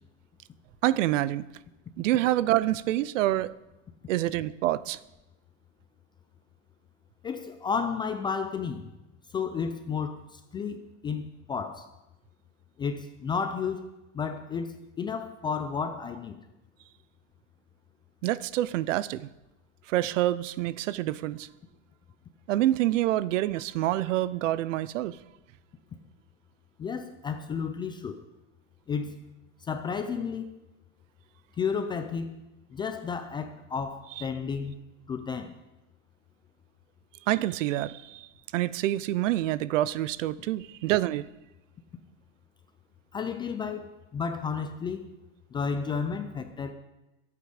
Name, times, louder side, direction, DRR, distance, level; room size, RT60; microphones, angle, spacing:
voice 1, 0.8-1.4 2.0-3.5 4.1-5.0 18.2-19.3 19.9-21.5 22.5-25.2 34.2-34.3 37.3-38.3 38.5-41.3, right 14 dB, 85° right, 0.7 m, -27 dB
voice 2, 7.2-8.9 9.3-11.9 12.8-16.4 26.8-28.2 28.9-29.2 29.6-30.5 31.6-32.4 32.7-34.8 35.1-35.6 43.1-45.1 45.5-46.7, left 6 dB, 15° left, 0.4 m, -32 dB
23.0 x 8.5 x 5.0 m
supercardioid pair, 155°, 37 cm